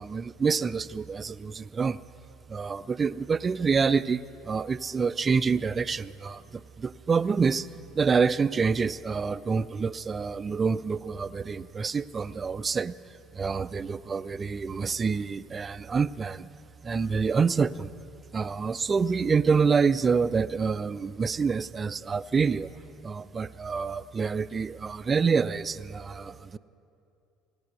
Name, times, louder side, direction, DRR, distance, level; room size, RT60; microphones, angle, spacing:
voice 1, 0.0-2.0 2.5-7.7 7.9-12.9 13.3-16.5 16.8-17.9 18.3-22.7 23.0-26.6, right 5 dB, 30° right, 15 dB, 0.4 m, -27 dB
17.5 x 9.5 x 8.1 m, 2.7 s
hypercardioid pair, 65°, 0 cm